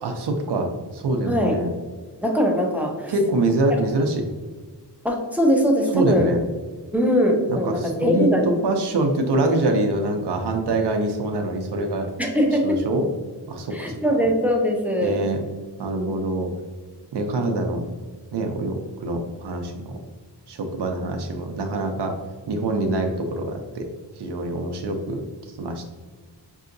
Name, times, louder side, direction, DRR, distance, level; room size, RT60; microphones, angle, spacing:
voice 1, 0.0-1.7 3.1-4.3 5.9-6.4 7.5-12.1 12.6-13.1 13.5-14.0 15.0-15.4 15.8-16.5 17.1-17.8 18.3-20.0 20.5-22.1 22.5-23.9 24.2-25.3 25.6-25.9, right 2 dB, 70° right, 4 dB, 0.6 m, -25 dB
voice 2, 1.2-1.6 2.2-3.1 5.0-6.3 6.9-8.5 12.2-12.8 13.7-15.3 15.9-16.2 22.8-23.0, equal, 5° right, 0 dB, 0.4 m, -21 dB
5.4 x 2.7 x 2.5 m, 1.4 s
wide cardioid pair, 175°, 42 cm